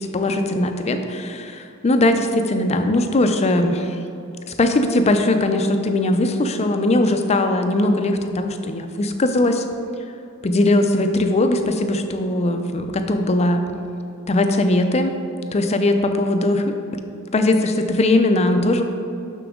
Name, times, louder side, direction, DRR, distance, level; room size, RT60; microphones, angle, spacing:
voice 1, 0.0-4.0 4.6-9.6 10.4-13.6 14.3-15.2 15.5-16.8 17.3-18.8, left 1 dB, 30° left, 6 dB, 0.4 m, -19 dB
6.9 x 5.9 x 3.6 m, 2.6 s
head